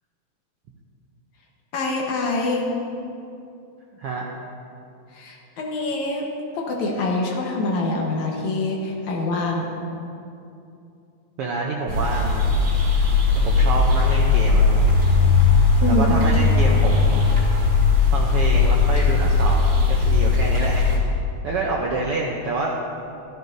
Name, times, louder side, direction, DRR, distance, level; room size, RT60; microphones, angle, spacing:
voice 1, 1.7-2.7 5.1-6.3 6.5-9.7 15.8-16.1, left 2 dB, 70° left, -1 dB, 2.5 m, -25 dB
voice 2, 3.9-4.2 11.4-12.5 13.4-14.9 16.0-17.2 18.1-21.2 21.4-22.7, right 3 dB, 75° right, -1 dB, 1.3 m, -27 dB
sound 1, 11.9-21.0, left 4 dB, 35° right, 2.7 m, -18 dB
13.5 x 13.0 x 2.7 m, 2.6 s
omnidirectional pair, 3.6 m